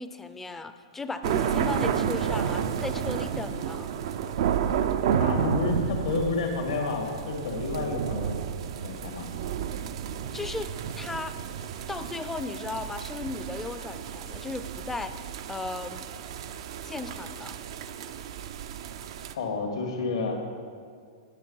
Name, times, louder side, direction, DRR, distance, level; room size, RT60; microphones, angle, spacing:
voice 1, 0.0-3.9 10.3-10.7 10.9-11.3 11.9-15.1 15.5-16.1 16.8-17.6, left 3 dB, 10° left, 9 dB, 0.5 m, -36 dB
sound 1, 1.2-19.3, right 8 dB, 65° right, 0.5 m, -31 dB
voice 2, 5.2-8.4 8.8-9.3 19.3-20.4, left 3 dB, 85° left, 2 dB, 2.1 m, -30 dB
10.5 x 6.3 x 5.5 m, 2.2 s
hypercardioid pair, 125°, 3 cm